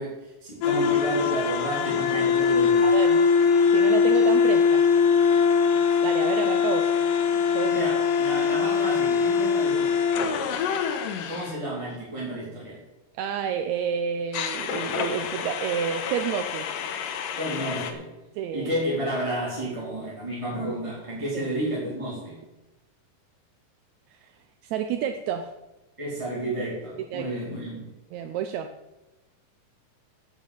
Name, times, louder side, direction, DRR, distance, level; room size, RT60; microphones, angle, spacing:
voice 1, 0.0-2.8 7.7-10.0 11.3-12.8 17.4-18.1 18.5-22.4 26.0-27.8, right 1 dB, 10° right, -6 dB, 2.3 m, -31 dB
sound 1, 0.6-11.5 14.3-17.9, left 6 dB, 85° left, 2.6 m, -23 dB
voice 2, 2.8-3.2 3.7-4.8 6.0-7.0 7.5-7.9 13.2-16.6 18.4-18.7 24.1-24.3 24.6-25.5 27.1-27.3 28.1-28.7, right 8 dB, 80° right, 7 dB, 1.7 m, -29 dB
8.8 x 8.2 x 7.7 m, 1.0 s
omnidirectional pair, 3.8 m